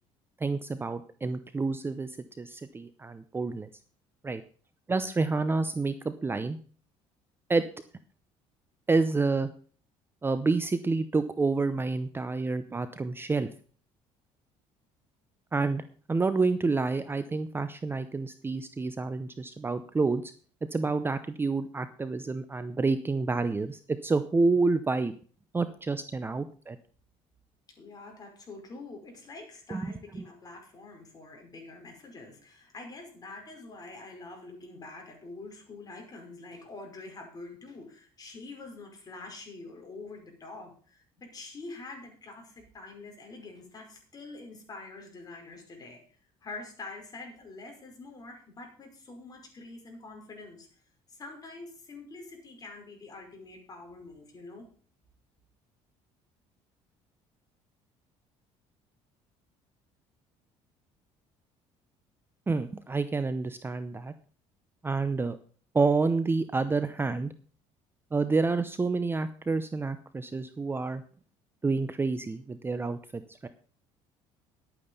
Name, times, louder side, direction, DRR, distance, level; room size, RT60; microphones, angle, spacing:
voice 1, 0.4-3.7 4.2-4.4 4.9-6.6 7.5-7.7 8.9-9.5 10.2-13.5 15.5-20.3 20.7-25.1 25.5-26.8 29.7-29.9 62.5-64.1 64.8-65.4 65.7-67.3 68.1-71.0 71.6-73.5, right 3 dB, 15° right, 12 dB, 0.7 m, -28 dB
voice 2, 27.8-46.0 46.4-50.7 51.1-54.7, left 3 dB, 30° left, 2 dB, 5.4 m, -45 dB
11.5 x 8.8 x 5.5 m, 0.43 s
cardioid pair, 115°, 13 cm